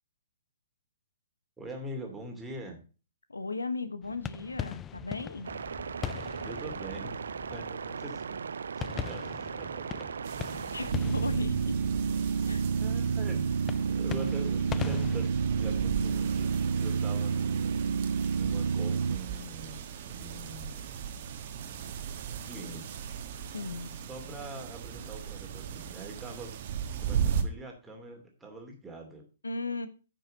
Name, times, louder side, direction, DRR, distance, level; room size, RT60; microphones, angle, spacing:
voice 1, 1.6-2.8 6.4-7.1 7.5-8.4 8.7-10.1 12.8-20.9 22.5-23.0 24.1-26.5 27.0-29.2, right 1 dB, 10° right, 2 dB, 2.7 m, -44 dB
voice 2, 3.3-5.5 10.7-11.7 12.4-12.6 23.5-23.9 29.4-29.9, left 3 dB, 80° left, 11 dB, 1.1 m, -36 dB
sound 1, 4.0-15.3, left 9 dB, 20° left, 0.4 m, -41 dB
sound 2, 5.4-19.2, right 6 dB, 70° right, 0.4 m, -31 dB
sound 3, 10.2-27.4, right 8 dB, 45° right, 1.3 m, -38 dB
9.4 x 5.9 x 5.3 m, 0.34 s
figure-of-eight pair, 120°, 0 cm